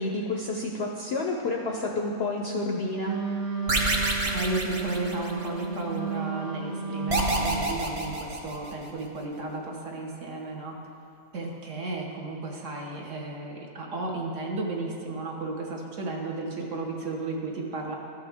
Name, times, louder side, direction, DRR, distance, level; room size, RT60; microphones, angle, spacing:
voice 1, 0.0-3.1, left 2 dB, 65° left, 0 dB, 0.6 m, -29 dB
Wind instrument woodwind instrument, 3.0-7.7, right 5 dB, 75° right, 1.5 m, -33 dB
sound 1, 3.7-5.6 7.1-8.9, right 1 dB, 30° right, 0.7 m, -28 dB
voice 2, 4.3-10.7 11.3-18.0, right 2 dB, 60° right, -1 dB, 1.3 m, -33 dB
13.0 x 5.5 x 3.5 m, 2.5 s
omnidirectional pair, 1.6 m